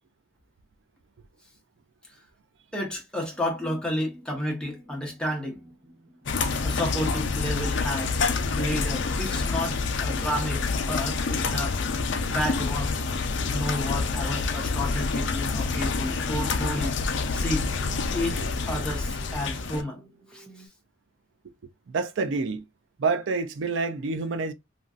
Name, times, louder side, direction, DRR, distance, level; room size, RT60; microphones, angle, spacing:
voice 1, 2.7-5.6 6.6-8.2 8.6-11.8 12.2-12.9 13.5-17.0 17.3-17.7 18.1-20.0 20.3-20.7, left 1 dB, 5° left, 0.9 m, -31 dB
sound 1, 3.3-20.7, right 1 dB, 25° right, 0.7 m, -49 dB
sound 2, 6.3-19.8, left 4 dB, 65° left, 0.5 m, -27 dB
voice 2, 21.9-22.6 23.0-24.5, right 4 dB, 70° right, 0.4 m, -27 dB
3.0 x 2.5 x 2.4 m
head